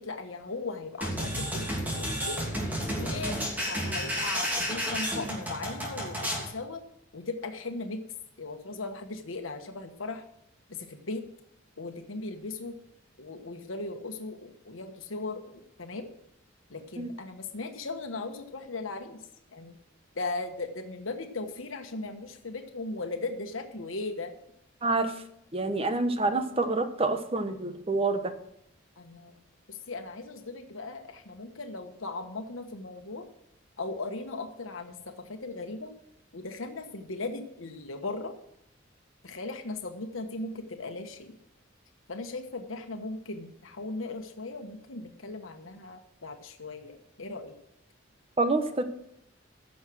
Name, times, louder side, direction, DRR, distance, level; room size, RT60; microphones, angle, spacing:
voice 1, 0.0-2.4 2.9-6.8 7.1-8.0 8.4-10.2 10.7-11.2 11.8-12.8 13.2-16.1 16.7-19.2 19.5-19.7 20.1-24.3 29.0-29.4 29.7-33.3 33.8-35.9 36.3-38.3 39.2-41.4 42.1-47.5, left 3 dB, 90° left, 6 dB, 1.2 m, -38 dB
sound 1, 1.0-6.5, equal, 10° right, 3.0 m, -31 dB
voice 2, 24.8-25.1 25.5-28.3 48.4-48.8, right 3 dB, 30° right, 8 dB, 1.0 m, -27 dB
15.5 x 6.4 x 6.2 m, 0.75 s
head